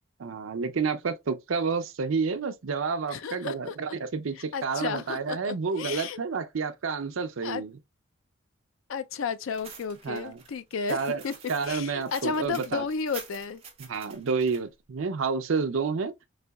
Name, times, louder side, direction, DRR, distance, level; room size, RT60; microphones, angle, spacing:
voice 1, 0.2-7.7 10.0-10.4 10.9-11.2 11.5-12.8 13.9-16.1, right 5 dB, 80° right, 0.5 m, -29 dB
voice 2, 3.1-3.8 4.4-6.2 7.4-7.6 8.9-11.0 11.2-11.3 11.6-13.6, left 5 dB, 75° left, 0.4 m, -33 dB
sound 1, 9.5-14.6, right 6 dB, 30° right, 0.8 m, -47 dB
4.1 x 2.7 x 2.3 m
head